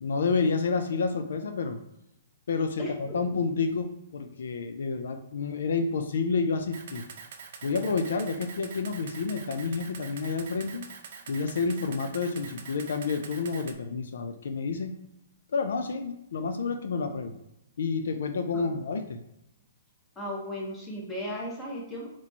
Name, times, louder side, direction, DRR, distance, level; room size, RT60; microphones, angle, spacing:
voice 1, 0.0-1.8 2.5-7.1 7.6-10.8 11.3-15.0 15.5-17.3 17.8-19.2, left 4 dB, 75° left, 7 dB, 0.5 m, -29 dB
voice 2, 2.8-3.4 18.5-18.8 20.1-22.1, equal, 10° left, -3 dB, 1.2 m, -36 dB
Camera, 6.7-13.7, right 6 dB, 55° right, 0.6 m, -45 dB
4.3 x 3.0 x 4.1 m, 0.82 s
hypercardioid pair, 160°, 0 cm